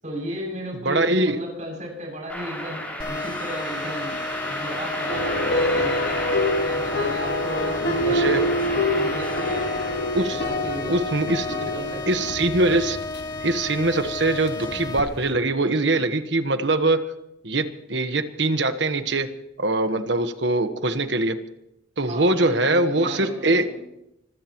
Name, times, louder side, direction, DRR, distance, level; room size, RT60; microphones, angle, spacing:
voice 1, 0.0-2.8 3.0-6.2 6.6-9.7 10.3-11.0 11.4-12.3 22.1-23.8, equal, 40° right, -1 dB, 7.5 m, -35 dB
voice 2, 0.8-1.4 8.0-8.4 10.1-10.4 10.9-11.6 12.1-13.0 13.4-17.0 17.4-19.3 19.6-21.4 22.0-23.6, right 2 dB, 60° right, 9 dB, 1.3 m, -22 dB
sound 1, 2.3-10.4, equal, 10° left, 6.3 m, -33 dB
sound 2, 3.0-15.0, left 3 dB, 25° left, 1.3 m, -33 dB
sound 3, 5.1-15.3, left 1 dB, 55° left, 1.7 m, -27 dB
25.0 x 16.0 x 3.1 m, 0.84 s
head